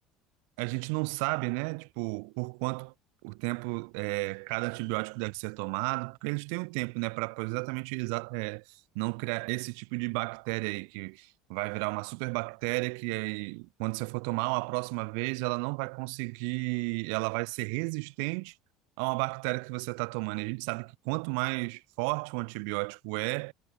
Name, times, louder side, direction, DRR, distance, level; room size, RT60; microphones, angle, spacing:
voice 1, 0.6-2.9 3.2-18.5 19.0-23.5, right 40 dB or more, 85° right, 0.9 m, -33 dB
cardioid pair, 135°, 0 cm